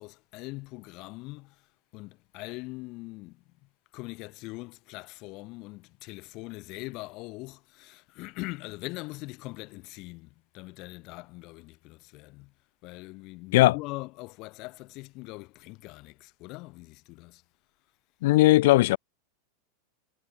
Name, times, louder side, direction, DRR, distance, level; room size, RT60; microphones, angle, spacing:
voice 1, 0.0-12.5 12.8-17.4, left 23 dB, 50° left, 1.2 m, -42 dB
voice 2, 18.2-19.0, left 18 dB, 65° left, 0.5 m, -18 dB
hypercardioid pair, 100°, 0 cm